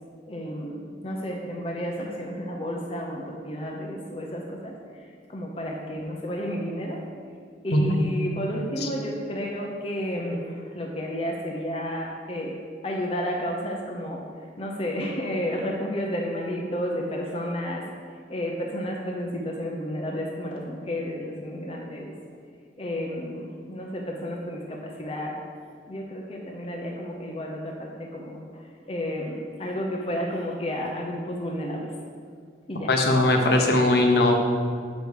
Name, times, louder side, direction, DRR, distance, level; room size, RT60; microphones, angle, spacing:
voice 1, 0.3-4.8 5.3-7.0 7.6-14.2 14.6-17.8 18.3-22.1 22.8-25.4 25.9-28.6 28.9-31.9 32.7-32.9, equal, 30° left, -1 dB, 0.7 m, -31 dB
voice 2, 7.7-8.0 8.8-8.9 32.9-34.4, left 2 dB, 60° left, 2 dB, 0.9 m, -20 dB
6.2 x 5.2 x 6.4 m, 2.2 s
head